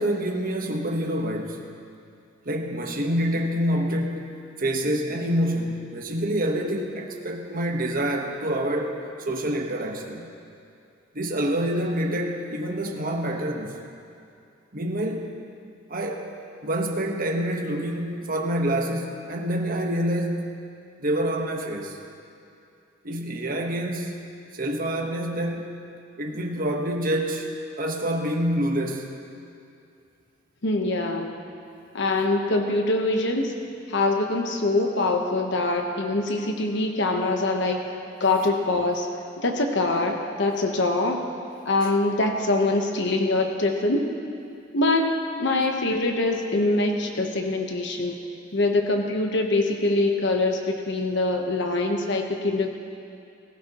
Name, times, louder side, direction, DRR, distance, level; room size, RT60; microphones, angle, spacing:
voice 1, 0.0-1.6 2.5-9.0 9.3-10.3 11.1-13.7 14.7-15.3 15.9-16.3 16.6-20.7 21.0-22.0 23.0-25.7 26.2-27.5 27.8-29.1, right 1 dB, 45° right, 2 dB, 1.3 m, -27 dB
voice 2, 30.6-31.3 31.9-33.5 33.9-37.8 38.2-39.1 39.4-41.2 41.7-44.1 44.7-45.1 45.4-48.2 48.5-52.7, left 2 dB, 60° left, 3 dB, 1.2 m, -24 dB
21.0 x 15.0 x 3.1 m, 2.5 s
head